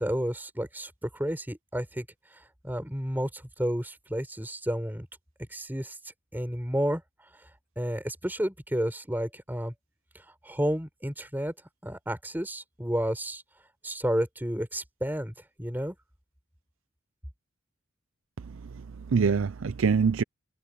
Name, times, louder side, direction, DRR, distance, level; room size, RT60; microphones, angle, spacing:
voice 1, 0.0-2.1 2.3-5.1 5.5-6.0 6.3-7.0 7.8-9.7 10.1-11.5 11.8-13.4 13.8-15.9, equal, 10° right, 4.9 m, -31 dB
voice 2, 18.4-20.2, right 5 dB, 80° right, 0.5 m, -25 dB
head